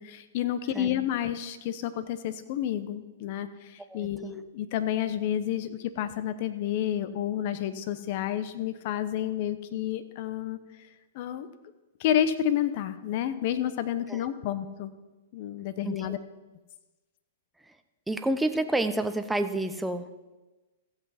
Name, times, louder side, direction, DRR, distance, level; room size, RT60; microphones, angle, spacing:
voice 1, 0.0-10.6 11.1-11.5 12.0-14.9 15.3-16.2, left 10 dB, 50° left, 12 dB, 0.9 m, -30 dB
voice 2, 3.9-4.3 14.1-14.3 15.8-16.2 18.1-20.1, right 1 dB, 5° right, 8 dB, 0.8 m, -29 dB
15.0 x 8.2 x 4.3 m, 1.2 s
hypercardioid pair, 115°, 0 cm